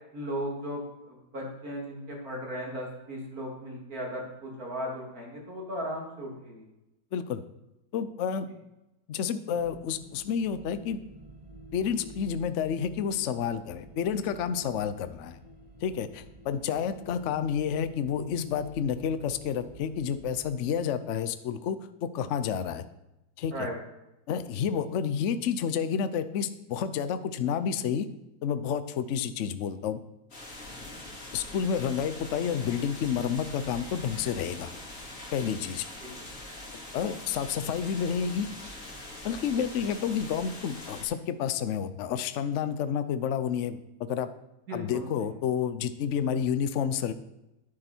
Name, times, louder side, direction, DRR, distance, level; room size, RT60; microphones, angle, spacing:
voice 1, 0.1-6.6 23.5-23.8 36.0-36.1 44.7-45.0, equal, 50° right, -1 dB, 3.2 m, -36 dB
voice 2, 7.1-7.4 7.9-8.5 9.1-11.0 11.7-15.4 15.8-22.8 23.4-23.7 24.3-28.1 28.4-30.0 31.3-34.7 35.3-35.9 36.9-38.5 39.2-44.3 44.7-47.1, left 7 dB, 60° left, 11 dB, 0.7 m, -30 dB
sound 1, 9.5-20.8, left 1 dB, 25° right, 1.0 m, -49 dB
sound 2, 30.3-41.0, left 1 dB, 45° left, 3.0 m, -43 dB
10.5 x 10.5 x 4.4 m, 0.91 s
omnidirectional pair, 2.0 m